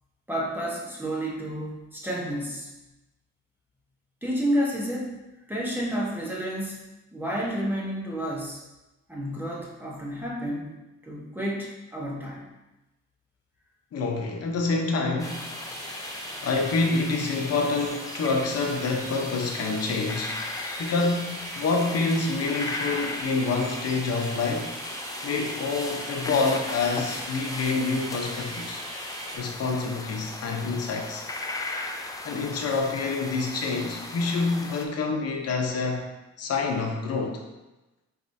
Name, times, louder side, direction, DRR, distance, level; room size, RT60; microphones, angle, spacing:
voice 1, 0.3-2.7 4.2-5.2 5.5-6.8 7.1-8.6 9.1-10.7 11.0-12.5, equal, 5° right, -4 dB, 1.1 m, -30 dB
voice 2, 13.9-15.7 16.4-20.4 20.8-24.7 25.2-28.8 29.3-31.2 32.2-36.0 36.4-37.4, left 3 dB, 55° left, 2 dB, 0.8 m, -27 dB
sound 1, 15.2-34.8, left 2 dB, 10° left, 0.4 m, -37 dB
sound 2, 15.2-29.4, right 1 dB, 50° right, 1.3 m, -40 dB
4.8 x 3.2 x 2.7 m, 1.0 s
cardioid pair, 90°, 30 cm